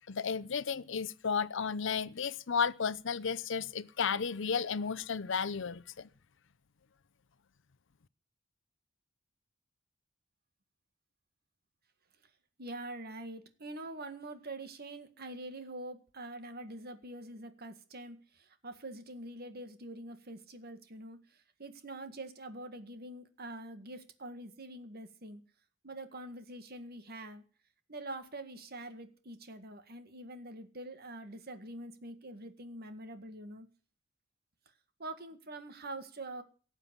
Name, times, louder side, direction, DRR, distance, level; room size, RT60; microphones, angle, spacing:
voice 1, 0.1-6.1, left 6 dB, 65° left, 0.7 m, -33 dB
voice 2, 12.6-25.4 25.8-27.4 27.9-33.7 35.0-36.4, right 2 dB, 50° right, 1.9 m, -45 dB
18.0 x 7.4 x 8.3 m
head